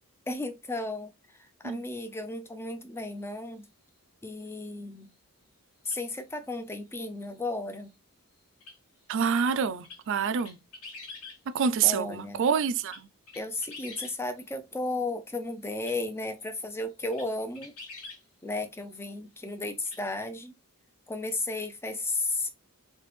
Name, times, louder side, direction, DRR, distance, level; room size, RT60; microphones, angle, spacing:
voice 1, 0.3-1.1 1.6-3.6 4.2-5.1 5.8-7.9 11.8-12.5 13.3-17.7 18.4-20.5 21.1-22.5, left 2 dB, 10° left, 0.4 m, -34 dB
sound 1, 5.9-6.0 8.6-8.8 9.8-10.0 10.4-11.4 12.6-14.2 15.8-16.0 16.6-16.7 17.1-17.3 17.5-18.2 19.9-20.0, left 3 dB, 90° left, 1.5 m, -45 dB
voice 2, 9.1-10.6 11.5-13.0, right 6 dB, 60° right, 0.4 m, -27 dB
3.2 x 2.9 x 3.2 m
head